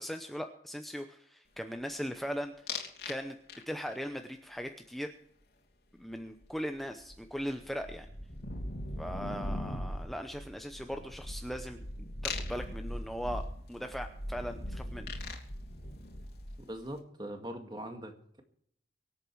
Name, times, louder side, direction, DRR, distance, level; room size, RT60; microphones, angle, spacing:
voice 1, 0.0-2.7 3.1-3.4 3.7-5.1 5.9-8.1 9.0-11.8 12.2-15.3, equal, ahead, 6 dB, 0.7 m, -39 dB
sound 1, 2.7-3.2 3.5-4.0 6.4-6.5 6.7-16.8, left 1 dB, 60° left, 3.0 m, -40 dB
voice 2, 16.6-18.4, right 1 dB, 25° right, 6 dB, 1.9 m, -42 dB
24.5 x 8.6 x 4.7 m, 0.67 s
head